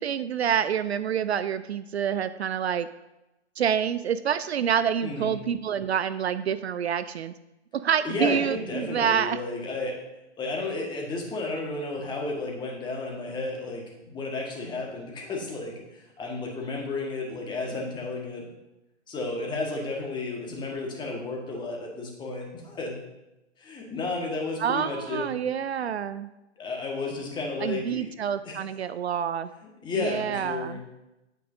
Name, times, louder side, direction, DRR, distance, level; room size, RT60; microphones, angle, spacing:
voice 1, 0.0-2.9 3.6-7.3 7.7-9.4 24.6-26.3 27.6-29.5 30.0-30.8, right 8 dB, 65° right, 14 dB, 0.5 m, -27 dB
voice 2, 5.0-5.4 8.0-10.0 10.4-18.5 19.1-23.0 23.6-25.3 26.6-28.1 28.4-28.6 29.8-30.8, left 3 dB, 15° left, 0 dB, 1.5 m, -32 dB
9.2 x 8.7 x 2.6 m, 0.95 s
figure-of-eight pair, 125°, 35 cm